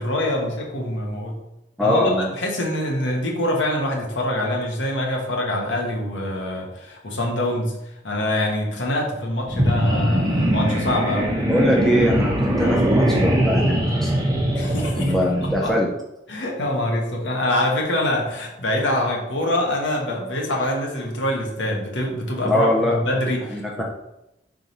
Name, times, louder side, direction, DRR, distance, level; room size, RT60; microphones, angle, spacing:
voice 1, 0.0-1.3 1.8-7.7 8.0-11.3 14.5-15.1 15.6-15.7 16.3-23.8, left 1 dB, 85° left, -1 dB, 1.3 m, -24 dB
voice 2, 1.8-2.3 11.4-14.5 14.9-15.9 22.4-23.0 23.5-23.8, left 1 dB, ahead, -3 dB, 0.6 m, -22 dB
sound 1, 9.5-15.7, equal, 20° right, 1.0 m, -21 dB
4.6 x 3.8 x 5.4 m, 0.88 s
head